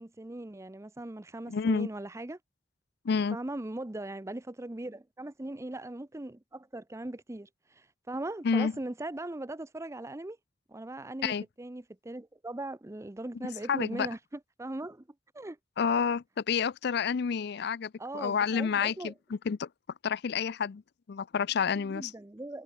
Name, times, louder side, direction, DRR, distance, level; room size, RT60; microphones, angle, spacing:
voice 1, 0.0-2.4 3.3-10.4 10.7-15.0 15.3-15.6 18.0-19.1 21.7-22.6, right 1 dB, 15° right, 0.6 m, -39 dB
voice 2, 1.5-1.9 3.0-3.4 8.4-8.7 11.2-11.4 13.7-14.1 15.8-19.7 20.0-20.8 21.1-22.1, left 6 dB, 60° left, 0.4 m, -29 dB
head